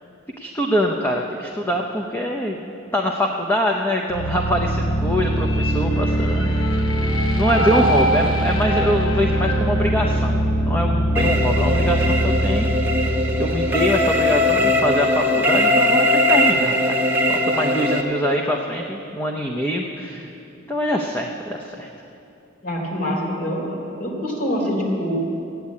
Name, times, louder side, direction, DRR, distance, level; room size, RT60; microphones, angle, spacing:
voice 1, 0.4-6.5 7.3-12.7 13.0-16.9 17.3-20.3 20.7-21.9, equal, 10° left, 0 dB, 0.7 m, -24 dB
sound 1, 4.1-15.0, right 1 dB, 85° left, 1.3 m, -22 dB
voice 2, 7.5-8.1 22.6-23.7 24.0-25.1, equal, 45° left, -2 dB, 3.8 m, -25 dB
sound 2, 11.2-18.0, left 1 dB, 10° right, 1.1 m, -20 dB
15.0 x 9.4 x 8.5 m, 2.7 s
head